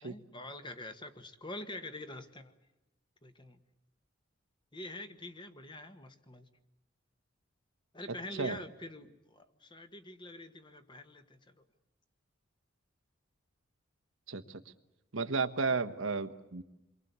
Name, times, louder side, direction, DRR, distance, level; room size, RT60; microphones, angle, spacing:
voice 1, 0.0-2.5 3.2-3.6 4.7-6.5 7.9-11.6, left 1 dB, 25° left, 8 dB, 1.5 m, -45 dB
voice 2, 14.3-14.6 15.1-16.6, right 4 dB, 85° right, 8 dB, 1.4 m, -33 dB
28.5 x 23.0 x 8.2 m, 0.95 s
head